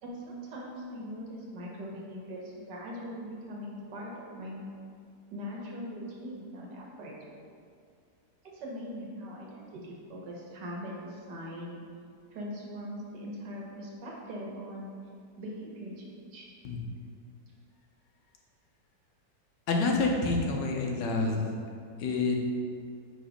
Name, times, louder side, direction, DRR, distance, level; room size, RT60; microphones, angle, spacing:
voice 1, 0.0-4.6 5.3-7.1 8.5-11.8 12.3-14.9 15.4-16.5, equal, 80° right, -3 dB, 1.7 m, -41 dB
voice 2, 19.7-21.4 22.0-22.4, left 3 dB, 85° left, 1 dB, 1.4 m, -27 dB
5.1 x 4.0 x 5.0 m, 2.3 s
omnidirectional pair, 1.8 m